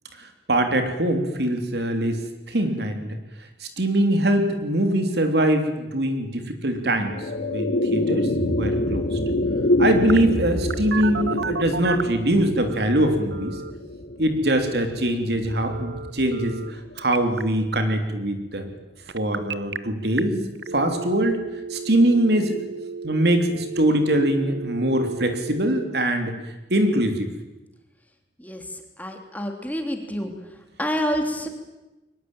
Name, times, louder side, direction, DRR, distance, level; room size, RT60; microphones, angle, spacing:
voice 1, 0.2-2.2 2.5-3.2 3.6-9.2 9.8-13.6 14.2-18.7 19.1-20.4 20.7-21.4 21.7-22.7 23.0-26.3 26.7-27.3, right 1 dB, 65° right, 6 dB, 3.3 m, -23 dB
sound 1, 6.7-17.2, left 1 dB, 80° left, 2.4 m, -27 dB
Telephone, 10.1-12.2 12.7-13.7 15.7-16.7 17.0-17.4 19.1-19.8 20.2-20.3 20.6-25.7, right 5 dB, 85° right, 1.0 m, -33 dB
voice 2, 29.0-30.3 30.8-31.5, equal, 10° left, 4 dB, 3.2 m, -27 dB
23.0 x 20.5 x 9.0 m, 1.0 s
head